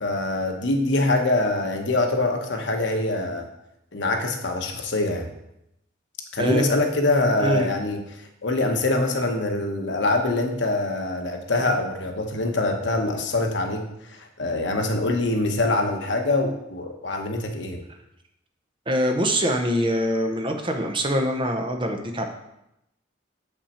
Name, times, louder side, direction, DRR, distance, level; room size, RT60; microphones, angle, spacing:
voice 1, 0.0-3.5 3.9-5.3 6.3-13.8 14.1-17.8, left 2 dB, 70° left, 4 dB, 1.0 m, -24 dB
voice 2, 18.9-22.2, equal, 25° right, 4 dB, 0.7 m, -24 dB
7.1 x 5.7 x 4.3 m, 0.83 s
head